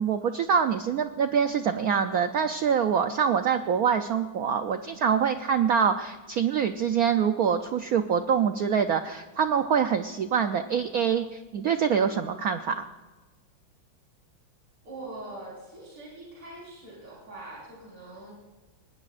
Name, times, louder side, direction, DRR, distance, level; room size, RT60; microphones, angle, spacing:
voice 1, 0.0-12.8, right 7 dB, 90° right, 8 dB, 0.8 m, -25 dB
voice 2, 14.8-18.3, right 2 dB, 45° right, -5 dB, 5.5 m, -43 dB
20.0 x 19.5 x 2.5 m, 1.2 s
omnidirectional pair, 2.3 m